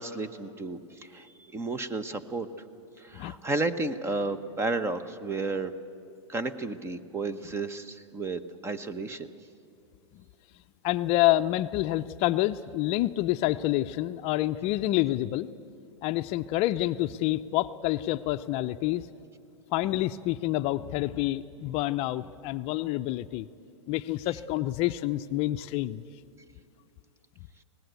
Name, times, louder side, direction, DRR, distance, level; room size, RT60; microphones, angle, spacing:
voice 1, 0.0-2.5 3.0-5.7 6.3-9.3, right 3 dB, 15° right, 13 dB, 1.0 m, -32 dB
voice 2, 10.8-15.5 16.0-19.1 19.7-23.5 23.9-26.0, left 15 dB, 40° left, 11 dB, 0.6 m, -28 dB
24.5 x 18.5 x 8.2 m, 2.5 s
hypercardioid pair, 125°, 15 cm